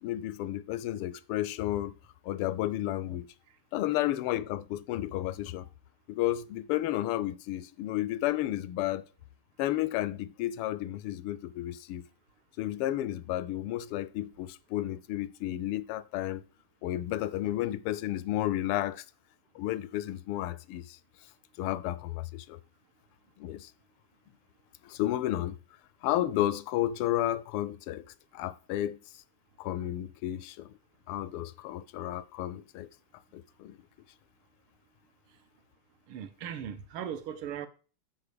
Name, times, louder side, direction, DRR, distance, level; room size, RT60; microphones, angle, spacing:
voice 1, 0.0-1.9 2.2-3.3 3.7-5.7 6.1-9.0 9.6-12.0 12.6-16.4 16.8-19.0 19.5-21.0 21.6-22.6 23.4-23.7 24.8-25.6 26.0-28.0 28.3-29.0 29.6-30.7 31.1-32.9 33.3-33.8, left 14 dB, 85° left, 1.5 m, -32 dB
voice 2, 36.1-37.7, right 9 dB, 75° right, 1.7 m, -38 dB
8.4 x 4.4 x 6.8 m
omnidirectional pair, 2.4 m